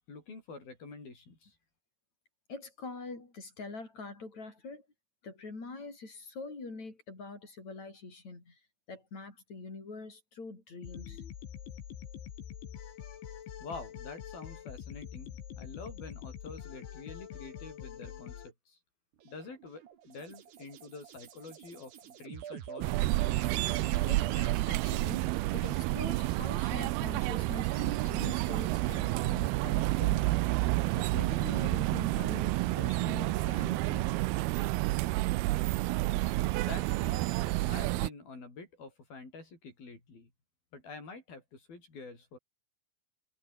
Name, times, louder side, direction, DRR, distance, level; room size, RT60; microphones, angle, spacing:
voice 1, 0.1-1.5 13.6-18.8 19.2-23.0 36.6-37.2 37.7-40.3 40.7-42.4, left 3 dB, 55° left, 9.6 m, -47 dB
voice 2, 2.5-4.8 5.2-8.5 8.9-11.2 24.1-25.3 25.5-30.5 31.0-34.2, left 3 dB, 40° left, 7.6 m, -44 dB
sound 1, 10.8-18.5, left 9 dB, 85° left, 5.5 m, -45 dB
sound 2, 19.2-24.6, right 10 dB, 65° right, 4.3 m, -44 dB
sound 3, 22.8-38.1, right 19 dB, 85° right, 2.3 m, -30 dB
omnidirectional pair, 5.2 m